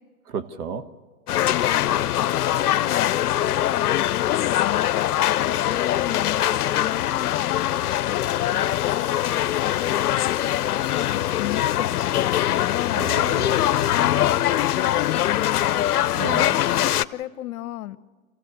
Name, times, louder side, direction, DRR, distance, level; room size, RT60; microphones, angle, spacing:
voice 1, 0.3-0.8 12.9-14.0 16.2-16.5, right 5 dB, 80° right, 9 dB, 1.5 m, -33 dB
sound 1, 1.3-17.0, left 12 dB, 90° left, 0.7 m, -22 dB
voice 2, 1.3-6.4 6.7-7.7 8.1-13.1 13.9-15.8 16.3-18.0, left 14 dB, 65° left, 14 dB, 0.9 m, -33 dB
27.0 x 16.0 x 6.6 m, 1.4 s
hypercardioid pair, 125°, 44 cm